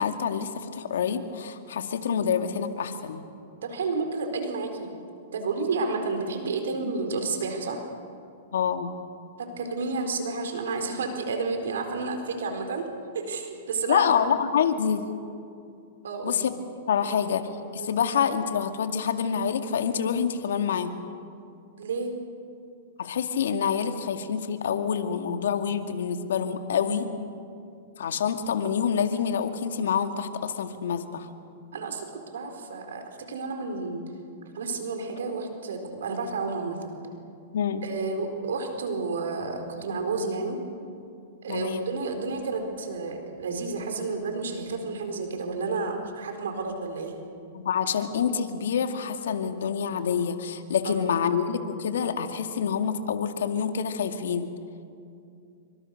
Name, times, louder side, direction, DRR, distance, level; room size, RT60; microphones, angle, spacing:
voice 1, 0.0-3.2 8.5-8.9 13.9-15.1 16.2-16.6 16.9-21.0 23.0-27.1 28.0-31.3 37.5-37.8 41.5-41.9 47.5-54.5, left 7 dB, 80° left, 7 dB, 2.1 m, -27 dB
voice 2, 3.6-4.9 5.3-7.8 9.4-12.9 13.1-14.1 16.0-16.4 17.8-17.9 21.8-22.1 26.7-27.1 31.7-34.0 34.5-36.9 37.8-40.6 41.4-47.1 50.8-51.1, right 4 dB, 85° right, 5 dB, 4.4 m, -31 dB
27.0 x 25.0 x 6.6 m, 2.5 s
hypercardioid pair, 135°, 0 cm